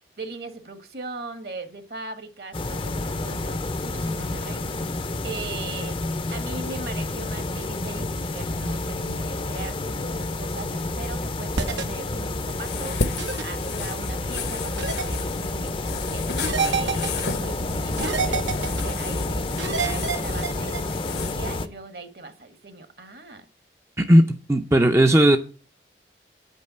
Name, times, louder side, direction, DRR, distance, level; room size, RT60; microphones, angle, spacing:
voice 1, 0.2-4.6 5.2-6.0 6.3-15.7 16.1-16.3 16.6-23.4, right 3 dB, 55° right, 1.3 m, -39 dB
sound 1, 2.5-21.7, left 2 dB, 30° left, 0.6 m, -29 dB
sound 2, 11.5-11.8 13.2-13.4 14.8-15.1 16.4-17.2 18.0-18.8 19.6-20.8, right 5 dB, 85° right, 1.0 m, -27 dB
sound 3, 12.3-21.3, left 4 dB, 70° left, 1.1 m, -34 dB
voice 2, 24.5-25.4, right 1 dB, 15° right, 0.5 m, -16 dB
9.3 x 5.4 x 7.8 m
head